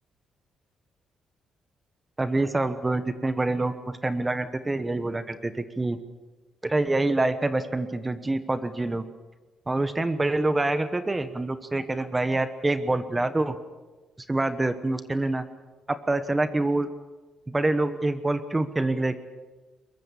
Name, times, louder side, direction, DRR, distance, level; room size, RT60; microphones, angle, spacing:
voice 1, 2.2-6.0 6.6-9.0 9.7-13.5 14.3-15.5 15.9-16.9 17.5-19.2, right 2 dB, 15° right, 11 dB, 1.2 m, -26 dB
22.5 x 22.0 x 7.2 m, 1.2 s
cardioid pair, 115°, 0 cm